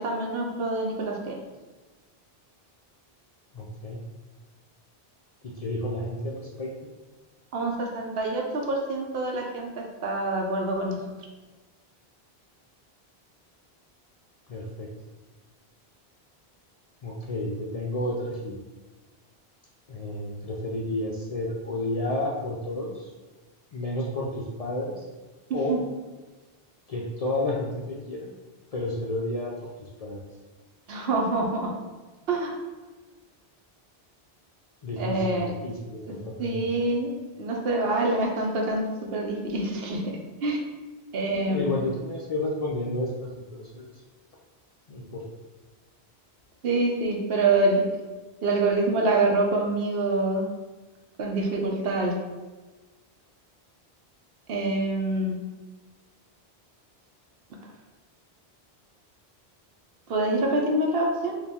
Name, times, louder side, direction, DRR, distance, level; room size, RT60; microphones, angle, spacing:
voice 1, 0.0-1.4 7.5-11.0 25.5-25.8 30.9-31.7 32.3-32.6 35.0-35.5 36.1-37.1 37.4-40.0 40.4-40.6 41.1-41.8 46.6-47.9 48.4-50.4 51.2-52.2 54.5-55.4 60.1-61.4, right 2 dB, 70° right, 1 dB, 0.9 m, -26 dB
voice 2, 3.5-4.0 5.4-6.7 14.5-14.9 17.0-18.6 19.9-23.1 23.7-25.1 25.5-25.8 26.9-28.3 28.7-30.2 34.8-36.6 41.2-44.0 44.9-45.2, left 1 dB, 50° left, -3 dB, 0.5 m, -31 dB
4.3 x 2.4 x 3.5 m, 1.3 s
omnidirectional pair, 1.1 m